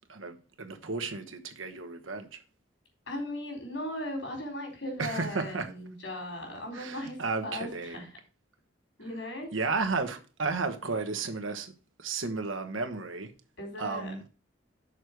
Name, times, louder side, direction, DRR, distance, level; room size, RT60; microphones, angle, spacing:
voice 1, 0.1-2.4 5.0-5.7 6.7-8.0 9.5-11.7 12.0-13.3 13.8-14.2, right 4 dB, 90° right, 1.2 m, -33 dB
voice 2, 3.1-7.2 7.4-8.1 9.0-9.5 13.6-14.1, left 1 dB, 75° left, 3.8 m, -37 dB
6.5 x 4.7 x 6.5 m
head